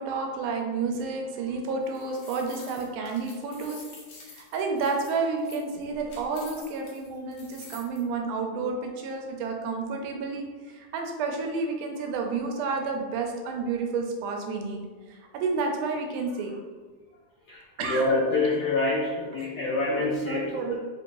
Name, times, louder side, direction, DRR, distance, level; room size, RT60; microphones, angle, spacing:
voice 1, 0.0-3.8 4.3-10.5 10.7-14.8 15.1-16.5 17.8-18.0 20.0-20.8, right 4 dB, 85° right, 2 dB, 2.1 m, -30 dB
sound 1, 1.7-8.0, left 3 dB, 65° left, 1.4 m, -48 dB
voice 2, 17.5-20.8, left 2 dB, 85° left, -5 dB, 1.4 m, -26 dB
5.1 x 2.9 x 2.6 m, 1.4 s
omnidirectional pair, 3.6 m